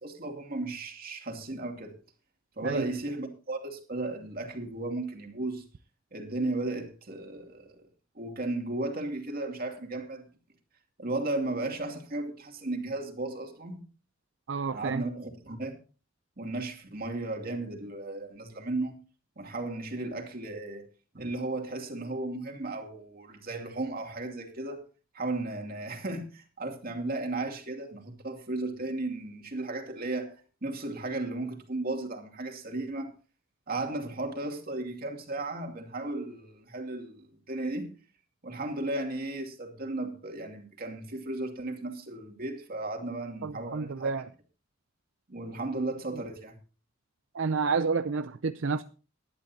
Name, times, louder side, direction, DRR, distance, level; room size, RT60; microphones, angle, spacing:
voice 1, 0.0-1.9 2.6-5.6 6.1-7.9 8.1-10.2 11.0-13.8 14.7-15.7 16.4-18.9 19.4-20.9 21.1-24.8 25.1-30.4 30.6-33.1 33.7-37.9 38.4-44.1 45.3-46.6, right 2 dB, 50° right, 2.7 m, -35 dB
voice 2, 14.5-15.0 43.4-44.3 47.3-48.8, right 4 dB, 70° right, 0.6 m, -29 dB
19.5 x 12.0 x 2.8 m
head